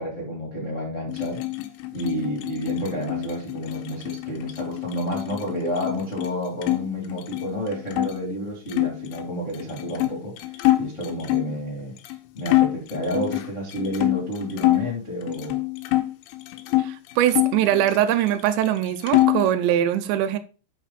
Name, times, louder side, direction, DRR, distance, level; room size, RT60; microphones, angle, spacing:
voice 1, 0.0-1.4 1.9-11.9 12.3-15.6, equal, 20° left, 2.2 m, -30 dB
sound 1, 1.1-6.8 7.1-8.1 8.7-11.6 12.1-12.2 12.5-14.9 15.3-16.9 17.3-18.4 18.7-19.5, left 18 dB, 85° left, 3.1 m, -25 dB
voice 2, 16.8-20.4, right 11 dB, 80° right, 2.7 m, -22 dB
10.0 x 5.2 x 4.1 m
omnidirectional pair, 5.6 m